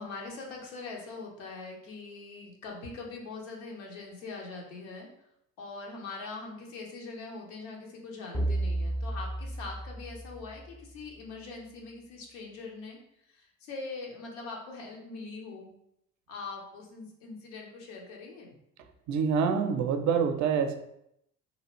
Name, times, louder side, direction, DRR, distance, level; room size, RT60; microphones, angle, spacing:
voice 1, 0.0-5.1 5.6-13.0 13.3-15.7 16.3-18.5, left 3 dB, 80° left, -1 dB, 0.8 m, -42 dB
sound 1, 8.3-11.0, right 1 dB, 5° left, 0.5 m, -33 dB
voice 2, 19.1-20.8, right 6 dB, 50° right, 7 dB, 0.5 m, -26 dB
2.8 x 2.3 x 3.0 m, 0.77 s
hypercardioid pair, 55°, 38 cm